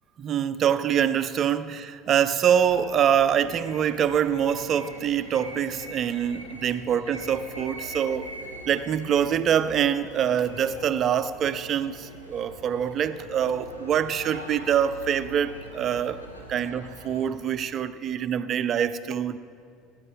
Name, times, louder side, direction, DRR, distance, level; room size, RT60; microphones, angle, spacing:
voice 1, 0.2-8.3 8.6-16.2 16.5-19.4, right 9 dB, 40° right, 0.6 m, -25 dB
sound 1, 2.4-17.3, equal, 90° left, 1.7 m, -43 dB
18.0 x 9.8 x 7.4 m
figure-of-eight pair, 65°, 0 cm